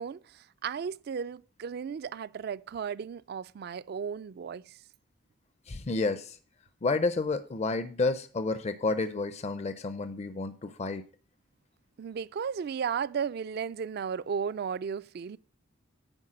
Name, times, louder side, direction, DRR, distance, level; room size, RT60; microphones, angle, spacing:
voice 1, 0.0-4.8 12.0-15.4, right 6 dB, 55° right, 0.3 m, -35 dB
voice 2, 5.7-6.4 6.8-11.0, left 3 dB, 35° left, 0.5 m, -30 dB
9.8 x 4.6 x 6.1 m
head